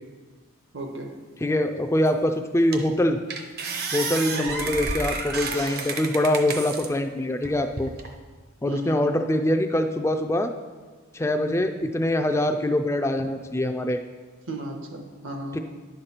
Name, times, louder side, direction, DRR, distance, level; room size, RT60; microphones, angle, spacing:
voice 1, 0.7-1.1 4.3-4.6 8.7-9.0 14.5-15.6, right 1 dB, 75° right, 3 dB, 1.3 m, -34 dB
voice 2, 1.4-3.2 3.9-7.9 8.6-10.5 11.1-14.0 15.5-15.6, left 1 dB, 15° left, 6 dB, 0.3 m, -24 dB
sound 1, 2.1-2.2 2.7-3.0 3.3-6.9 7.4-8.1, right 3 dB, 50° right, 0.8 m, -31 dB
10.5 x 6.5 x 4.4 m, 1.4 s
head